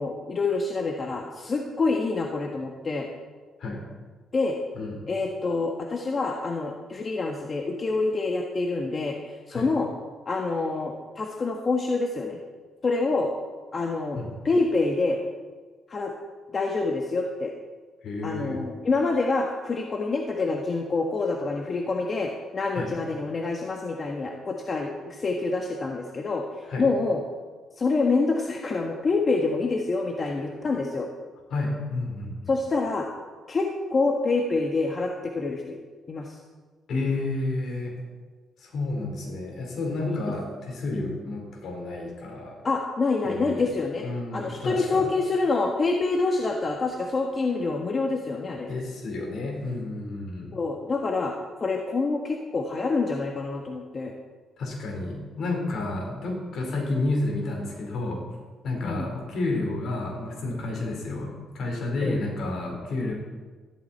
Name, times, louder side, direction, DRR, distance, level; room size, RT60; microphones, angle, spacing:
voice 1, 0.0-3.1 4.3-4.6 5.1-9.9 10.2-12.4 12.8-13.3 13.7-14.2 14.4-15.2 15.9-16.1 16.5-17.5 18.2-26.4 26.8-27.2 27.8-31.1 32.5-33.1 33.5-35.8 36.1-36.4 40.1-40.2 42.6-44.0 44.3-48.7 50.5-54.1 58.8-59.0 62.0-62.2, left 3 dB, 40° left, 1 dB, 1.4 m, -26 dB
voice 2, 18.0-18.6 22.7-22.9 26.6-26.9 31.5-32.5 36.9-37.9 38.6-42.7 43.2-43.6 44.0-45.1 48.7-50.5 54.6-58.2 58.6-63.1, left 2 dB, 65° left, 0 dB, 4.5 m, -30 dB
14.0 x 13.0 x 4.5 m, 1.4 s
cardioid pair, 90°, 0 cm